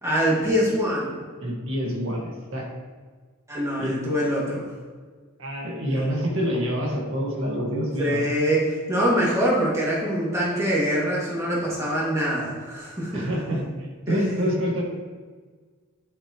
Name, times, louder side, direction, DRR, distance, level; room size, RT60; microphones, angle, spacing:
voice 1, 0.0-1.2 3.5-4.6 8.0-13.3 14.1-14.5, equal, 15° right, -6 dB, 2.6 m, -24 dB
voice 2, 1.4-2.7 3.8-3.9 5.4-8.2 13.1-13.6 14.1-14.8, equal, 70° right, -2 dB, 2.0 m, -27 dB
10.0 x 7.1 x 3.3 m, 1.5 s
head